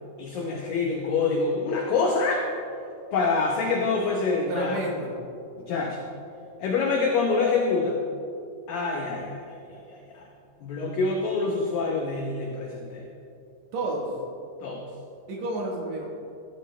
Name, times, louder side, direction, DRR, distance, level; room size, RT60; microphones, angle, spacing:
voice 1, 0.2-2.4 3.1-4.8 5.6-6.0 6.6-8.0 8.7-10.2 10.6-13.1 14.6-14.8, left 4 dB, 85° left, 0 dB, 2.0 m, -26 dB
voice 2, 4.5-5.2 13.7-14.2 15.3-16.1, right 2 dB, 80° right, -1 dB, 1.6 m, -30 dB
16.5 x 12.5 x 3.3 m, 2.6 s
omnidirectional pair, 5.4 m